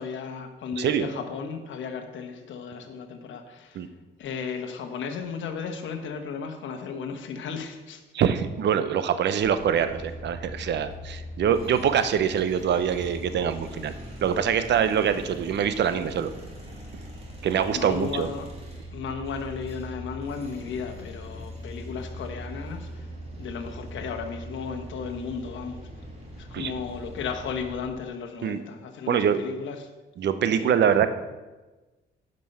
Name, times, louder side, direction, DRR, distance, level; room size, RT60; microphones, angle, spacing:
voice 1, 0.0-3.8 4.2-8.0 14.6-14.7 17.7-18.5 18.9-23.0 23.4-25.8 26.4-29.9 30.6-30.7, left 6 dB, 70° left, 5 dB, 1.2 m, -35 dB
voice 2, 0.8-1.1 3.7-3.9 8.1-13.9 14.2-16.3 17.4-18.3 26.5-26.7 28.4-28.6 29.1-29.4 30.2-31.1, right 8 dB, 60° right, 11 dB, 0.7 m, -24 dB
sound 1, 9.4-27.9, equal, 30° right, 2.6 m, -41 dB
10.5 x 5.4 x 5.5 m, 1.2 s
cardioid pair, 90°, 20 cm